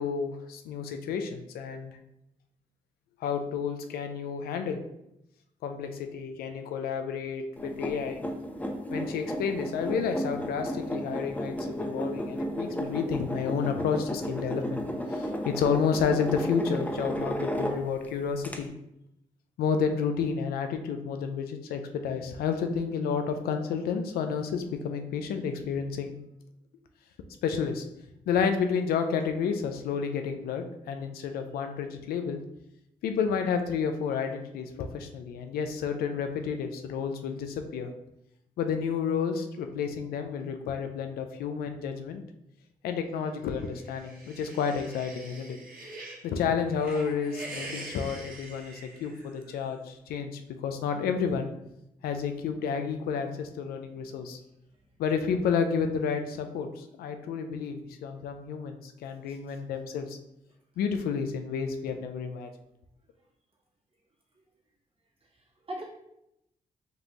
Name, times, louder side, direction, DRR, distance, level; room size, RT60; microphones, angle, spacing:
voice 1, 0.0-2.0 3.2-4.8 5.6-8.2 8.9-14.8 15.1-18.7 19.6-26.1 27.4-27.8 28.3-32.4 33.0-37.9 38.6-42.2 42.8-45.6 46.2-51.5 52.0-54.4 55.0-60.2 60.8-62.5, left 6 dB, 85° left, 6 dB, 0.4 m, -30 dB
sound 1, 7.6-18.1 18.4-18.6, equal, 10° left, 0.8 m, -33 dB
sound 2, 43.6-46.2 46.6-49.5, right 2 dB, 70° right, 1.3 m, -44 dB
voice 2, 59.3-59.6 65.3-65.8, right 1 dB, 40° right, -3 dB, 1.5 m, -42 dB
5.3 x 2.5 x 3.0 m, 0.82 s
supercardioid pair, 50°, 15 cm